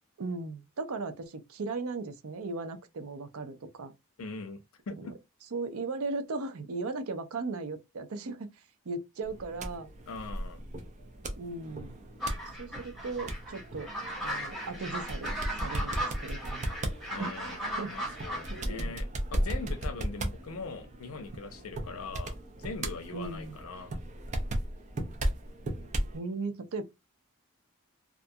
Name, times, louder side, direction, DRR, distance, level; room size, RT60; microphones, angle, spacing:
voice 1, 0.2-3.9 5.0-5.1 5.5-9.9 11.4-12.0 12.6-13.9 14.2-16.7 17.2-17.3 17.8-18.1 18.5-18.9 23.1-23.6 26.1-26.8, right 3 dB, 80° right, 0.5 m, -37 dB
voice 2, 4.2-5.1 10.1-10.6 17.1-23.9, left 3 dB, 75° left, 0.5 m, -41 dB
sound 1, 9.2-26.2, right 1 dB, 35° right, 0.5 m, -36 dB
sound 2, 12.2-18.6, equal, ahead, 0.9 m, -37 dB
2.4 x 2.2 x 2.6 m
head